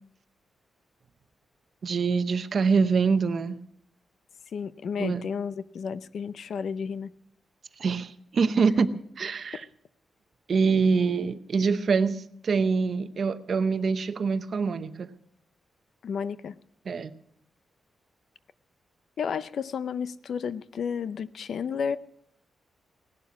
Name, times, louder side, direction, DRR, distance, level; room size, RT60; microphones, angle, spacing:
voice 1, 1.8-3.6 5.0-5.2 7.8-9.6 10.5-15.1 16.9-17.1, right 5 dB, 45° right, 11 dB, 0.8 m, -25 dB
voice 2, 4.5-7.1 16.0-16.6 19.2-22.0, left 6 dB, 60° left, 15 dB, 0.5 m, -32 dB
17.5 x 11.5 x 5.9 m, 0.68 s
wide cardioid pair, 175°, 0 cm